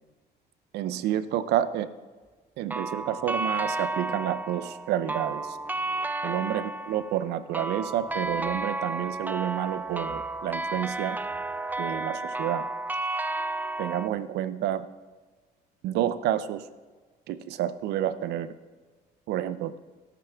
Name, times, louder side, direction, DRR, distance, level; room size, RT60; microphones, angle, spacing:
voice 1, 0.7-1.9 2.6-5.6 6.2-11.2 11.8-12.7 13.8-14.9 15.8-16.7 17.3-18.5 19.3-19.8, right 11 dB, 80° right, 14 dB, 0.6 m, -29 dB
sound 1, 2.7-14.1, right 2 dB, 10° right, 0.4 m, -32 dB
13.5 x 12.0 x 3.5 m, 1.4 s
cardioid pair, 110°, 17 cm